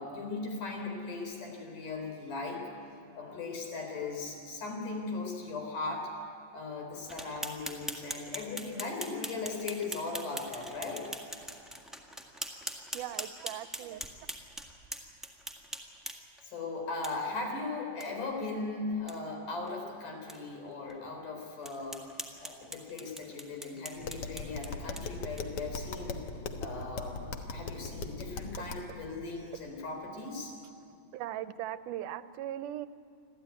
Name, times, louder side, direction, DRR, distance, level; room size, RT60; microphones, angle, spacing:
voice 1, 0.0-2.6 3.2-6.2 6.5-11.1 16.4-22.0 22.4-26.2 26.6-27.2 27.5-30.5, left 3 dB, 75° left, 2 dB, 5.5 m, -38 dB
sound 1, 7.1-16.4 17.0-17.1 17.5-17.6 18.0-18.1 18.4-18.5 18.9-19.2 19.7-19.8 20.3-20.4 20.9-21.0 21.6-25.7, right 1 dB, ahead, 0.5 m, -42 dB
voice 2, 12.9-14.0 31.1-32.9, right 12 dB, 80° right, 13 dB, 2.1 m, -39 dB
Tap, 24.0-28.9, left 3 dB, 55° left, 1.9 m, -39 dB
25.5 x 15.0 x 9.4 m, 2.6 s
omnidirectional pair, 3.7 m